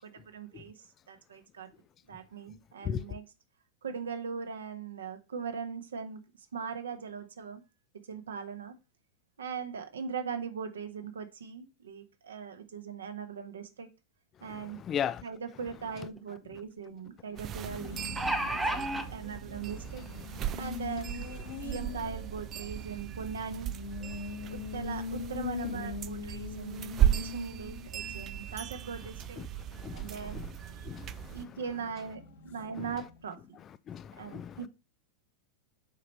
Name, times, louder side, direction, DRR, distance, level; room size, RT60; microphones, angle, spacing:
voice 1, 0.0-1.7 2.1-3.3 3.8-6.2 6.5-7.6 8.1-8.7 9.4-13.9 14.4-14.8 15.2-18.0 18.5-20.1 20.6-21.2 21.6-23.7 24.5-29.5 29.9-30.4 30.8-30.9 31.3-33.6 34.2-34.7, right 6 dB, 65° right, 1.3 m, -40 dB
voice 2, 14.5-15.2 29.7-30.5 30.8-31.4 32.8-32.9 33.9-34.6, left 8 dB, 25° left, 0.4 m, -36 dB
sound 1, 15.7-15.8 16.2-16.3 17.8-19.1 20.0-20.1 20.5-20.6, right 1 dB, 5° right, 1.0 m, -31 dB
Race car auto racing, 17.2-33.5, left 5 dB, 60° left, 1.7 m, -43 dB
sound 2, 17.4-31.5, right 12 dB, 30° right, 0.4 m, -36 dB
7.3 x 5.4 x 4.5 m
figure-of-eight pair, 90°, 0 cm